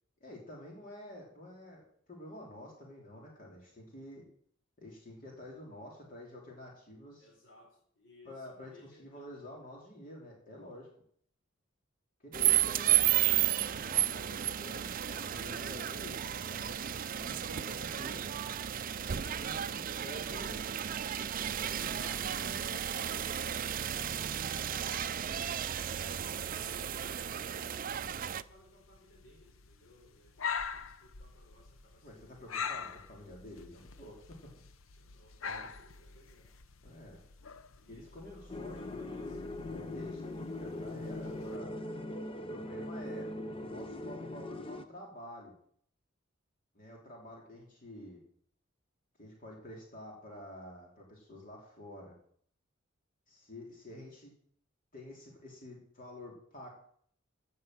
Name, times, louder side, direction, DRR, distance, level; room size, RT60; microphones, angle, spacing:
voice 1, 0.2-1.8 2.1-4.2 4.8-7.3 8.2-8.7 9.0-10.9 12.2-18.2 19.1-20.7 21.5-23.3 32.0-34.2 35.4-35.7 36.8-37.2 37.9-39.2 39.6-41.8 42.5-45.6 46.7-48.2 49.2-52.1 53.3-54.3 54.9-56.7, left 1 dB, 40° left, -2 dB, 3.1 m, -49 dB
voice 2, 7.2-9.3 25.6-32.5 35.0-36.5 37.7-39.4, left 1 dB, 70° left, -2 dB, 4.3 m, -61 dB
sound 1, 12.3-28.4, right 11 dB, 45° right, 0.5 m, -33 dB
sound 2, 26.3-41.6, left 6 dB, 90° left, 0.8 m, -45 dB
sound 3, 38.5-44.9, left 1 dB, 25° left, 0.8 m, -41 dB
15.5 x 6.6 x 7.5 m, 0.62 s
head